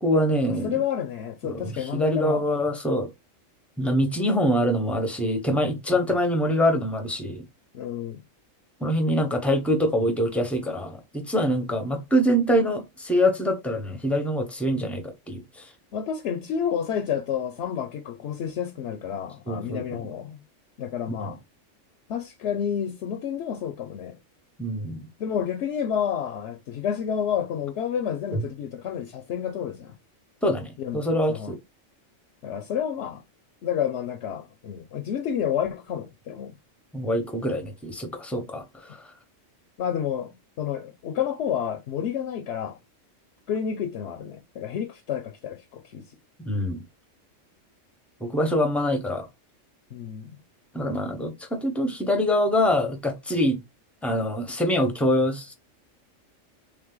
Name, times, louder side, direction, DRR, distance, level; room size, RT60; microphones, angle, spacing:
voice 1, 0.0-0.8 1.4-3.1 3.8-7.4 8.8-15.7 19.5-20.1 21.2-21.3 24.6-25.1 28.3-28.4 30.4-31.6 36.9-39.0 46.4-46.8 48.2-49.3 50.7-53.6 54.0-55.5, equal, ahead, 0.7 m, -25 dB
voice 2, 0.6-2.4 7.7-8.2 15.9-20.4 20.8-21.4 22.1-24.2 25.2-30.0 30.8-31.0 31.3-31.6 32.4-33.2 33.6-36.5 38.3-38.4 39.8-42.8 43.5-46.0 49.9-50.4, left 8 dB, 65° left, 0.9 m, -30 dB
3.6 x 3.3 x 3.8 m
omnidirectional pair, 1.4 m